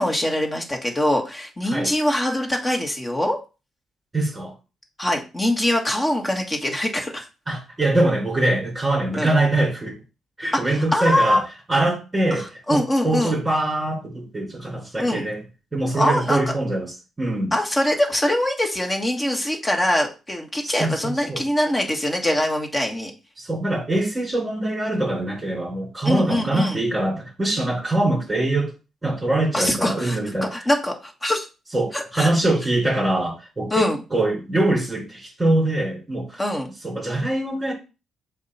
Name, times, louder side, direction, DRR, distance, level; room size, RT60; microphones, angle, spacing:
voice 1, 0.0-3.4 5.0-7.3 9.2-9.3 10.5-11.4 12.3-13.4 15.0-15.2 16.0-16.5 17.5-23.1 26.0-26.8 29.5-30.2 30.5-31.5 31.9-32.3 33.7-34.0 36.4-36.7, left 1 dB, 20° left, 1.5 m, -23 dB
voice 2, 4.1-4.5 7.5-10.0 10.4-15.4 15.7-17.5 20.6-21.4 23.4-28.7 29.0-30.5 31.7-36.4 36.8-37.7, right 2 dB, 15° right, 3.8 m, -23 dB
7.2 x 2.4 x 5.6 m
cardioid pair, 90°, 0 cm